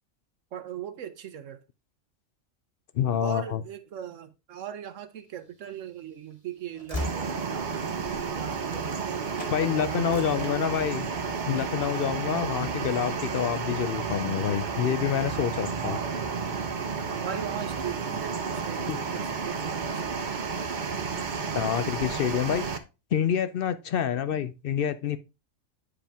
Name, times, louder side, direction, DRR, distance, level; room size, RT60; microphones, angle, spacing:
voice 1, 0.5-1.6 3.2-9.3 9.6-10.6 15.8-16.3 17.1-20.4, right 10 dB, 75° right, 1.0 m, -39 dB
voice 2, 2.9-3.6 9.5-11.1 11.5-16.0 18.9-19.0 21.5-22.7 23.1-25.2, left 9 dB, 60° left, 0.6 m, -27 dB
Train / Slam, 5.5-9.1 9.3-9.6 9.9-11.1 11.5-11.9, left 2 dB, 25° left, 2.3 m, -40 dB
sound 1, 7.0-22.8, right 5 dB, 45° right, 0.8 m, -32 dB
8.9 x 4.9 x 3.4 m
omnidirectional pair, 1.3 m